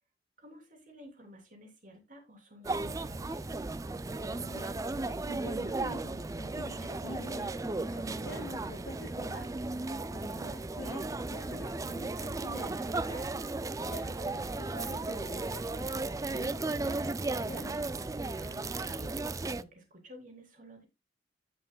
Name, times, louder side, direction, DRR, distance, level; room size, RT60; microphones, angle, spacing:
voice 1, 0.4-3.5 10.3-10.5 14.0-14.4 18.3-20.9, equal, 50° right, 3.3 m, -53 dB
sound 1, 2.6-19.6, right 2 dB, 20° right, 0.4 m, -35 dB
voice 2, 4.4-9.5 10.1-13.3 13.9-17.8, left 1 dB, 85° left, 2.5 m, -47 dB
16.0 x 5.7 x 2.3 m
head